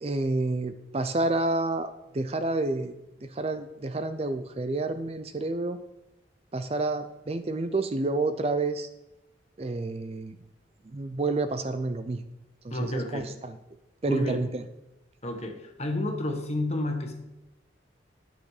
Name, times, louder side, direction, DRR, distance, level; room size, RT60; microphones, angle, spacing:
voice 1, 0.0-2.9 3.2-5.8 6.5-8.9 9.6-10.4 10.9-12.2 12.6-13.6 14.0-14.6, right 2 dB, 35° right, 10 dB, 0.5 m, -29 dB
voice 2, 12.7-13.3 14.1-14.4 15.2-17.1, left 1 dB, 35° left, 3 dB, 1.5 m, -30 dB
11.5 x 6.6 x 4.9 m, 0.95 s
head